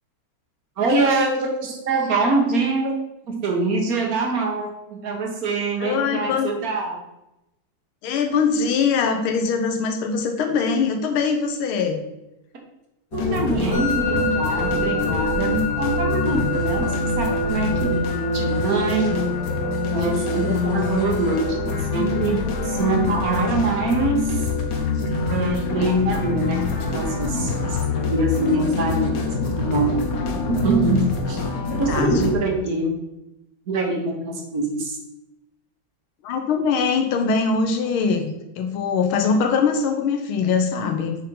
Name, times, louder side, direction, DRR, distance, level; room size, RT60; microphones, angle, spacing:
voice 1, 0.8-2.9 3.3-7.0 13.1-19.1 19.9-24.5 25.3-27.8 28.1-29.9 30.5-31.4 31.8-33.0 33.7-35.0, right 2 dB, 50° right, 2 dB, 1.6 m, -24 dB
voice 2, 5.8-6.5 8.0-12.0 31.7-32.3 36.2-41.2, left 5 dB, 90° left, 4 dB, 1.8 m, -22 dB
sound 1, 13.1-32.3, left 4 dB, 55° left, 1.3 m, -25 dB
Musical instrument, 13.7-32.6, right 1 dB, 90° right, 3.1 m, -31 dB
6.9 x 4.4 x 5.4 m, 0.91 s
omnidirectional pair, 2.3 m